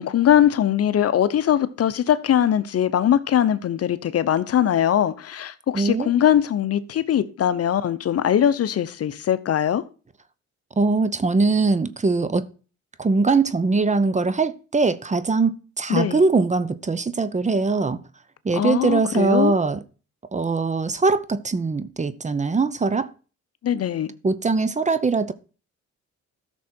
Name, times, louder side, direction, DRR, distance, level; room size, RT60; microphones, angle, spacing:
voice 1, 0.0-9.9 15.9-16.2 18.5-19.5 23.6-24.1, left 10 dB, 50° left, 0.8 m, -21 dB
voice 2, 5.7-6.1 10.8-12.4 13.0-18.0 18.4-19.8 20.3-23.1 24.2-25.3, right 3 dB, 25° right, 0.8 m, -21 dB
13.5 x 6.3 x 4.4 m
cardioid pair, 90°, 30 cm